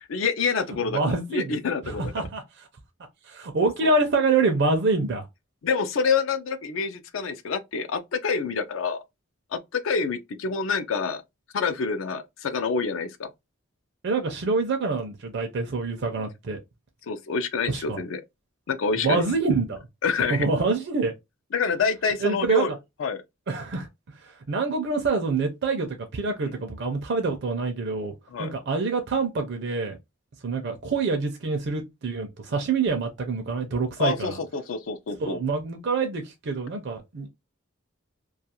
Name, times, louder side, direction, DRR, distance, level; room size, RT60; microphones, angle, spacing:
voice 1, 0.1-2.2 5.6-9.0 9.5-11.2 11.5-13.3 17.1-18.2 18.7-19.2 20.0-20.5 21.5-22.7 23.0-23.2 26.4-26.5 28.3-28.5 34.0-35.4, left 5 dB, 70° left, 0.4 m, -27 dB
voice 2, 0.9-1.5 1.8-2.7 3.3-5.3 14.0-16.6 17.7-18.0 19.0-19.8 20.3-21.1 22.2-22.7 23.5-23.9 24.5-28.1 28.4-30.0 30.4-34.4 35.2-37.3, right 3 dB, 60° right, 0.5 m, -26 dB
2.4 x 2.3 x 2.8 m
head